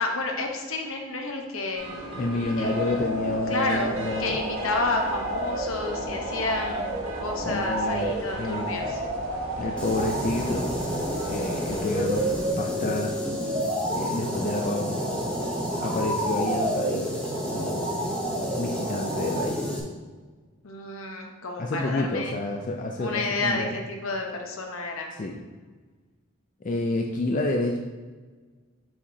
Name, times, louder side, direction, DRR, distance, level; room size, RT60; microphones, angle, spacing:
voice 1, 0.0-1.8 2.6-2.7 3.5-3.9 4.2-9.0 20.6-22.3 23.0-25.1, left 2 dB, 70° left, 2 dB, 0.9 m, -30 dB
sound 1, 1.7-12.5, right 1 dB, 85° right, 1.4 m, -38 dB
voice 2, 2.1-4.4 7.4-8.8 9.6-10.7 11.3-12.3 12.6-13.2 13.9-15.0 15.8-18.1 18.5-19.8 21.6-23.7 25.2-25.4 26.6-27.8, left 2 dB, 35° left, 1 dB, 0.4 m, -29 dB
sound 2, 2.6-19.5, right 1 dB, 30° right, 1.6 m, -31 dB
sound 3, 9.8-19.8, left 1 dB, 5° left, 0.7 m, -32 dB
7.1 x 4.9 x 2.7 m, 1.4 s
head